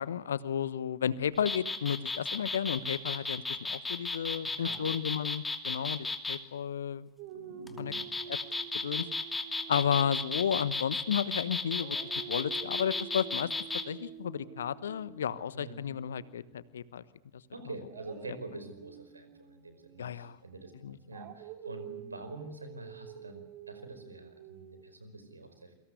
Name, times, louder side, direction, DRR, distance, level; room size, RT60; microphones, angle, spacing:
voice 1, 0.0-7.1 7.3-7.4 7.8-7.9 8.3-8.4 8.8-9.1 9.7-12.0 12.3-13.5 13.9-17.0 20.0-20.4 20.8-21.0, left 8 dB, 65° left, 18 dB, 1.2 m, -33 dB
sound 1, 1.4-6.4 7.7-13.8, left 3 dB, 10° left, 2.8 m, -34 dB
voice 2, 4.4-4.9 7.5-8.1 15.5-15.8 17.5-25.7, right 2 dB, 80° right, 9 dB, 5.1 m, -46 dB
Dog, 7.2-11.3 11.7-16.7 17.8-24.8, right 9 dB, 45° right, 4.2 m, -49 dB
28.0 x 24.5 x 8.2 m, 0.76 s
figure-of-eight pair, 90°, 0 cm